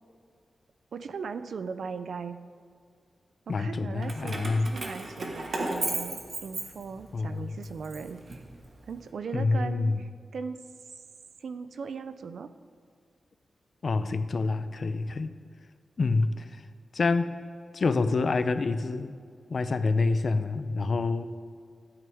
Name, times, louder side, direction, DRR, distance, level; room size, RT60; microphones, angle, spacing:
voice 1, 0.9-2.4 3.5-8.4 8.9-10.6 11.4-12.5, right 5 dB, 75° right, 11 dB, 0.5 m, -38 dB
voice 2, 3.5-4.7 7.1-7.6 9.3-10.0 13.8-15.3 16.0-16.6 16.9-17.3 17.7-19.1 19.5-21.3, left 3 dB, 45° left, 11 dB, 0.5 m, -27 dB
Keys jangling, 4.0-7.2 7.6-8.9, right 2 dB, 50° right, 1.3 m, -35 dB
14.0 x 8.9 x 3.6 m, 2.1 s
wide cardioid pair, 155°, 0 cm